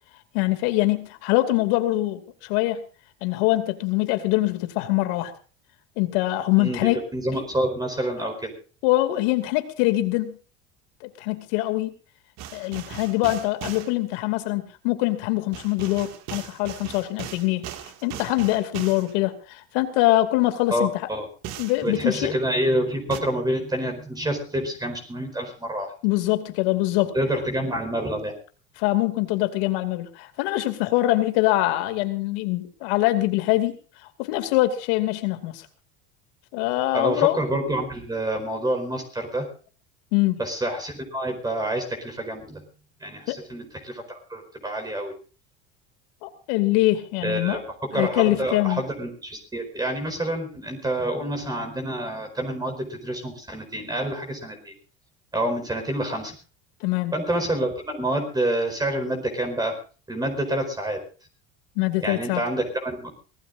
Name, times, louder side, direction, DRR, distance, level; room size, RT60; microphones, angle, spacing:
voice 1, 0.3-2.8 3.2-5.3 6.0-7.0 8.8-10.4 11.0-11.9 12.5-17.7 18.0-21.1 21.6-22.3 26.0-27.1 28.8-33.7 34.2-35.6 36.5-37.4 40.1-40.4 43.3-43.4 46.2-47.6 47.9-48.8 56.8-57.1 61.8-62.4, left 17 dB, 75° left, 9 dB, 2.6 m, -23 dB
voice 2, 6.6-8.5 20.7-21.3 21.8-25.9 27.1-28.3 36.9-39.5 40.4-42.6 43.0-45.1 47.2-47.6 47.9-54.7 55.3-56.3 57.1-59.7 60.1-61.0 62.0-63.1, right 1 dB, 15° right, 4 dB, 4.7 m, -27 dB
sound 1, 12.4-13.9 15.5-19.1 21.4-21.8 23.1-23.2, right 10 dB, 60° right, 2.2 m, -38 dB
24.5 x 18.0 x 2.6 m, 0.38 s
supercardioid pair, 110°, 31 cm